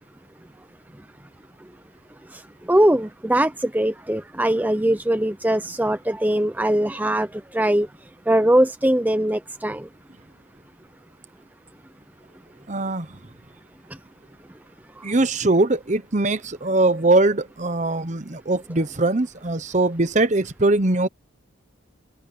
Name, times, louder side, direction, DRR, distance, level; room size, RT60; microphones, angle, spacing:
voice 1, 2.7-7.9 8.3-9.9 15.0-15.1, right 1 dB, 10° right, 0.6 m, -21 dB
voice 2, 12.7-13.1 15.0-21.1, right 2 dB, 35° right, 1.0 m, -21 dB
open air
head